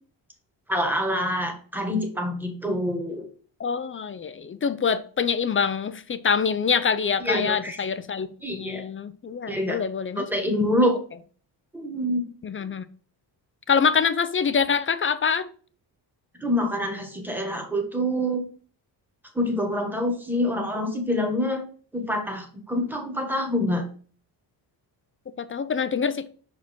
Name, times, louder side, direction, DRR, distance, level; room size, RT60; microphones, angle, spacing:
voice 1, 0.7-3.3 7.2-7.8 8.4-8.8 9.5-9.8 10.1-11.0 11.7-12.3 16.4-18.5 19.3-21.6 21.9-23.8, left 1 dB, 5° right, 4 dB, 1.4 m, -26 dB
voice 2, 3.6-8.3 8.5-10.3 12.4-12.8 13.7-15.5 25.4-26.3, left 6 dB, 30° left, 13 dB, 0.4 m, -25 dB
6.0 x 4.8 x 3.6 m, 0.43 s
cardioid pair, 130°, 44 cm